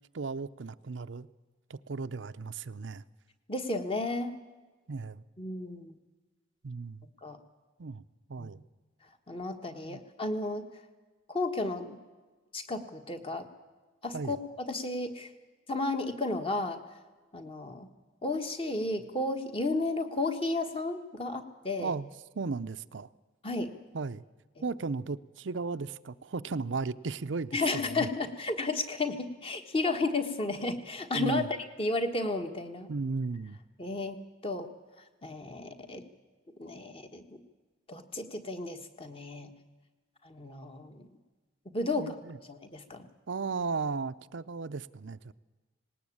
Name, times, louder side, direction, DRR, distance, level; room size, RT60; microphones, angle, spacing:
voice 1, 0.1-1.3 1.7-3.0 4.9-5.2 6.6-7.1 7.8-8.0 8.3-8.6 9.8-10.0 14.1-14.4 21.8-22.1 22.4-23.1 23.9-24.2 24.6-28.1 31.1-31.5 32.9-33.6 41.9-42.4 43.3-45.3, right 4 dB, 70° right, 12 dB, 0.6 m, -35 dB
voice 2, 3.5-4.4 5.4-5.9 7.2-7.4 8.4-8.5 9.3-10.7 11.3-12.0 12.5-13.5 14.0-15.3 15.7-16.8 17.3-17.9 18.2-21.9 23.4-23.7 27.5-31.4 31.8-32.9 33.8-34.7 35.2-36.0 36.6-37.4 37.9-39.5 40.2-41.1 41.7-42.1 42.5-43.1, left 2 dB, 25° left, 7 dB, 1.5 m, -33 dB
19.0 x 18.5 x 8.6 m, 1.3 s
head